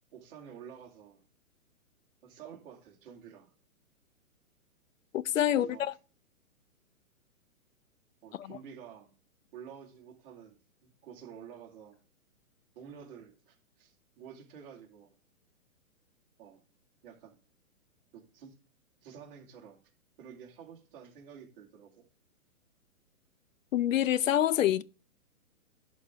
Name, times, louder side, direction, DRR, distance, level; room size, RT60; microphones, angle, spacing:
voice 1, 0.1-1.2 2.2-3.5 5.5-6.0 8.2-9.1 9.5-12.0 12.7-15.2 16.4-16.6 17.0-17.4 18.1-18.6 19.0-19.8 20.2-22.1, right 8 dB, 40° right, 2.6 m, -50 dB
voice 2, 5.1-5.9 8.4-8.6 23.7-24.8, left 11 dB, 65° left, 0.7 m, -27 dB
11.0 x 4.8 x 3.8 m
hypercardioid pair, 150°, 42 cm